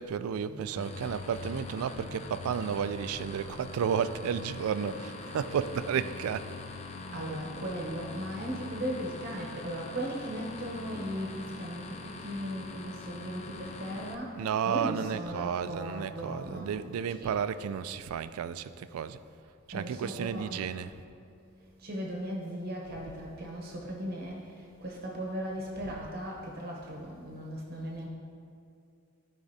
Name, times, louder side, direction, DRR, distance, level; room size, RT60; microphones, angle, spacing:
voice 1, 0.0-6.5 14.4-19.2 19.7-20.9 25.8-25.9, right 7 dB, 90° right, 13 dB, 0.3 m, -32 dB
sound 1, 0.7-14.1, left 3 dB, 30° left, 0.4 m, -43 dB
voice 2, 7.1-17.5 19.7-20.7 21.8-24.5 24.8-28.1, equal, 45° right, -2 dB, 0.9 m, -37 dB
11.5 x 4.9 x 2.7 m, 2.4 s
head